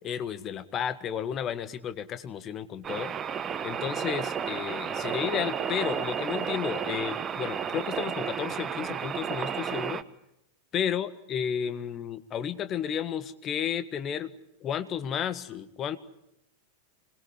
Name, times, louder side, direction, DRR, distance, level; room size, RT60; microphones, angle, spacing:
voice 1, 0.0-3.1 3.6-10.0 10.7-14.3 14.6-16.0, left 8 dB, 30° left, 11 dB, 1.7 m, -32 dB
sound 1, 2.8-10.0, right 7 dB, 25° right, 1.2 m, -32 dB
26.0 x 21.0 x 9.9 m, 0.84 s
figure-of-eight pair, 90°, 0 cm